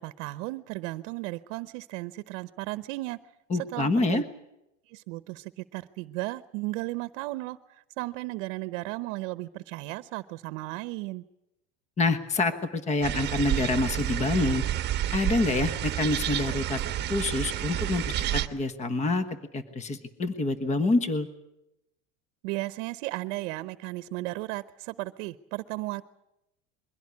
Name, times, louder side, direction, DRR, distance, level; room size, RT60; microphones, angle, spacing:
voice 1, 0.0-3.2 3.5-4.2 4.9-11.2 22.4-26.0, right 20 dB, 60° right, 14 dB, 0.9 m, -35 dB
voice 2, 3.5-4.2 12.0-14.6 15.1-16.8 17.1-18.0 18.3-21.3, left 3 dB, 20° left, 11 dB, 1.3 m, -27 dB
sound 1, 13.0-18.5, right 12 dB, 25° right, 1.3 m, -29 dB
22.5 x 16.5 x 9.6 m, 0.87 s
supercardioid pair, 150°, 38 cm